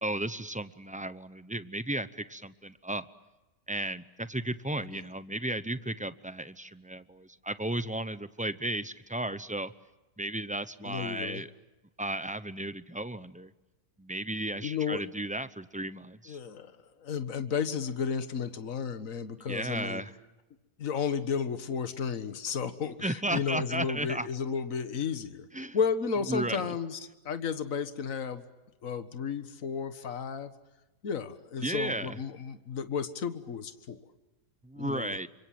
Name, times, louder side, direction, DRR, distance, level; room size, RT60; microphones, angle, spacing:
voice 1, 0.0-3.1 3.7-9.7 10.2-11.5 12.0-13.5 14.0-16.4 19.4-20.1 23.0-24.3 25.5-25.8 26.3-26.7 31.6-32.2 34.6-35.3, right 1 dB, 10° right, 13 dB, 0.5 m, -34 dB
voice 2, 10.8-11.4 14.6-15.0 16.3-16.7 17.0-20.0 20.8-27.0 27.3-28.5 28.8-30.5 31.0-34.0 34.8-35.2, left 6 dB, 60° left, 10 dB, 1.9 m, -33 dB
29.5 x 25.5 x 7.7 m, 1.1 s
omnidirectional pair, 1.6 m